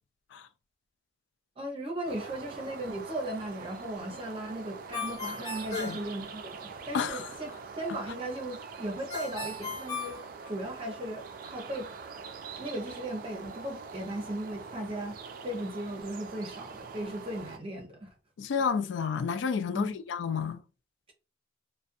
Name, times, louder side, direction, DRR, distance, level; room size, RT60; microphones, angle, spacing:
voice 1, 1.6-7.5 7.8-11.9 12.6-15.2 15.4-18.1 19.7-20.0, right 1 dB, 30° right, 0.7 m, -37 dB
sound 1, 2.1-17.6, right 5 dB, 50° right, 0.3 m, -44 dB
Ringtone, 4.9-6.8 9.1-11.0, left 3 dB, 20° left, 0.9 m, -38 dB
voice 2, 6.9-7.3 18.4-20.6, left 6 dB, 75° left, 0.3 m, -30 dB
2.4 x 2.2 x 2.6 m
head